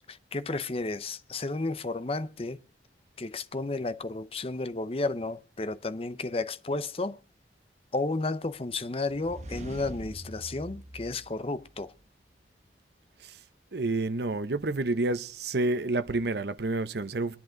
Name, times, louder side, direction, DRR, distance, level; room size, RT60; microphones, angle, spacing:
voice 1, 0.1-2.6 3.2-7.2 7.9-11.9, left 3 dB, 30° left, 0.6 m, -32 dB
sound 1, 9.1-12.0, right 1 dB, 40° right, 1.1 m, -44 dB
voice 2, 13.7-17.4, right 2 dB, 70° right, 0.8 m, -29 dB
23.0 x 10.5 x 3.8 m
head